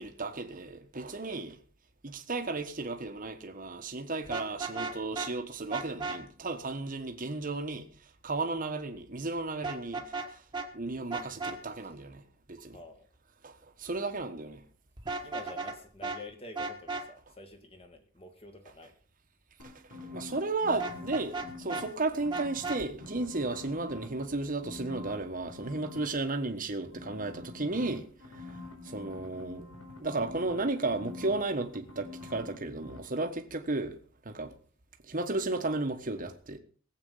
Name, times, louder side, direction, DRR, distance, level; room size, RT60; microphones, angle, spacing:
voice 1, 0.0-1.6 2.0-7.9 8.2-10.0 10.3-10.4 10.7-12.2 12.5-12.8 13.4-14.6 19.6-19.7 20.0-28.0 28.3-28.5 28.8-29.7 30.0-34.0 34.2-34.5 35.1-36.6, right 2 dB, 40° right, 1.4 m, -34 dB
Vehicle horn car horn honking, 4.2-5.3 5.7-6.2 9.6-10.3 10.5-10.7 11.1-11.6 15.0-15.8 16.0-16.2 16.6-17.1 20.8-21.9 22.3-22.8, right 3 dB, 20° right, 1.5 m, -35 dB
voice 2, 12.7-13.1 15.2-19.0, left 2 dB, 25° left, 2.1 m, -48 dB
sound 1, 19.6-21.9 22.2-24.2 24.6-26.1 26.9-32.6 32.8-33.0, left 3 dB, 85° left, 4.4 m, -46 dB
18.5 x 8.2 x 5.6 m
head